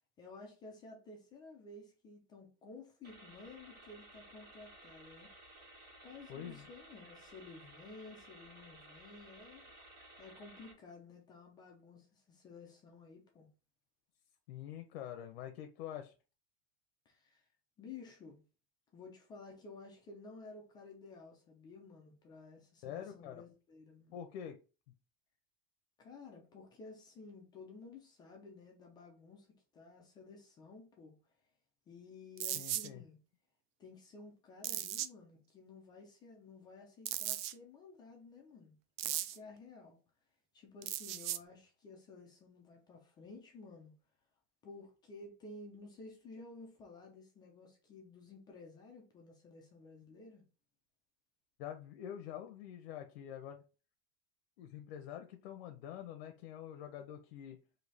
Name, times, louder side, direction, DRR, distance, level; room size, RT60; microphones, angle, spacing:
voice 1, 0.2-5.7 6.0-9.9 10.2-13.5 17.1-17.5 17.8-18.4 18.9-24.1 26.0-29.5 29.7-31.1 31.9-33.2 33.8-38.7 39.0-40.0 40.5-43.9 44.6-50.4, left 3 dB, 15° left, 0.3 m, -54 dB
sound 1, 3.0-10.7, right 1 dB, 30° right, 1.0 m, -57 dB
voice 2, 6.3-6.7 14.5-16.1 22.8-23.4 24.1-24.6 32.5-33.0 51.6-53.6 54.6-57.6, left 10 dB, 70° left, 0.6 m, -46 dB
sound 2, 32.4-32.9 34.6-35.1 37.0-37.5 39.0-39.4 40.8-41.4, right 12 dB, 70° right, 0.5 m, -37 dB
3.2 x 2.7 x 4.0 m
supercardioid pair, 175°, 31 cm